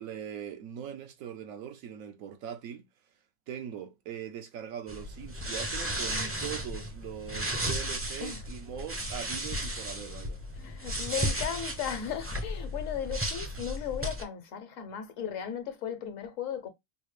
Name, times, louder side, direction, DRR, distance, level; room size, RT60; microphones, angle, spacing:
voice 1, 0.0-2.9 3.5-10.4, right 9 dB, 80° right, 1.1 m, -41 dB
sound 1, 4.9-14.2, equal, 20° right, 0.4 m, -34 dB
voice 2, 10.6-16.7, left 8 dB, 70° left, 1.2 m, -36 dB
4.9 x 2.0 x 3.2 m
omnidirectional pair, 1.4 m